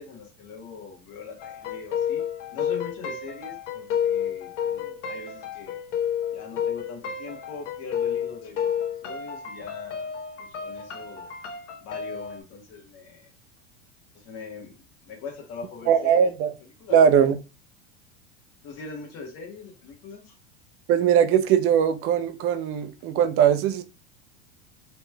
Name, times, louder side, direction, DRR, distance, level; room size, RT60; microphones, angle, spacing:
voice 1, 0.0-2.2 2.5-5.8 6.3-8.7 9.0-11.3 11.8-13.3 14.1-16.3 16.8-17.2 18.6-20.3, left 5 dB, 45° left, 1.2 m, -41 dB
sound 1, 1.4-12.4, left 8 dB, 75° left, 0.8 m, -31 dB
voice 2, 15.9-16.5 16.9-17.3 20.9-23.8, right 8 dB, 40° right, 0.5 m, -20 dB
3.1 x 2.9 x 2.2 m
hypercardioid pair, 100°, 36 cm